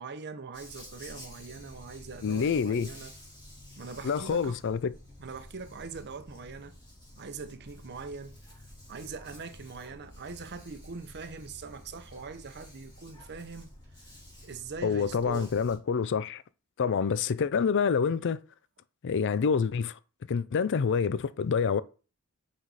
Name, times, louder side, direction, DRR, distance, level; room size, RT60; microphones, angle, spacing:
voice 1, 0.0-3.1 3.8-4.5 5.2-6.8 7.2-8.4 8.9-13.7 14.4-15.5, right 4 dB, 50° right, 0.7 m, -42 dB
Dog, 0.5-15.8, left 1 dB, 20° left, 3.4 m, -50 dB
voice 2, 2.2-2.9 4.0-4.9 14.8-16.4 16.8-18.4 19.0-20.0 20.3-21.8, left 6 dB, 55° left, 0.4 m, -27 dB
6.1 x 4.1 x 4.8 m
head